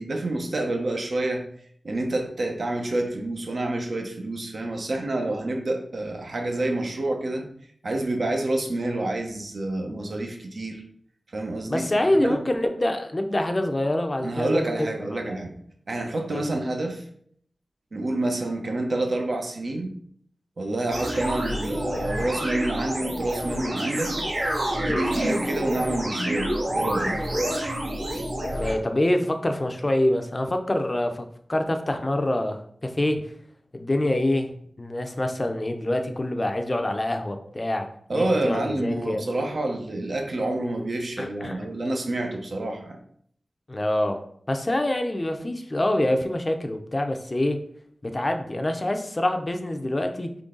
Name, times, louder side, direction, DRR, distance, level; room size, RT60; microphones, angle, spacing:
voice 1, 0.0-1.4 1.8-7.5 7.8-10.8 11.3-12.4 14.2-15.5 15.9-17.0 17.9-19.9 20.6-24.3 24.8-27.2 38.1-43.0, right 2 dB, 65° right, 2 dB, 0.8 m, -28 dB
voice 2, 11.7-15.4 16.3-16.5 28.5-33.2 33.7-39.2 41.2-41.6 43.7-44.2 44.5-47.6 48.0-50.4, left 1 dB, 30° left, 5 dB, 0.5 m, -26 dB
sound 1, 20.9-28.7, right 1 dB, 80° right, 1.7 m, -28 dB
3.8 x 3.3 x 3.7 m, 0.64 s
wide cardioid pair, 90°, 0 cm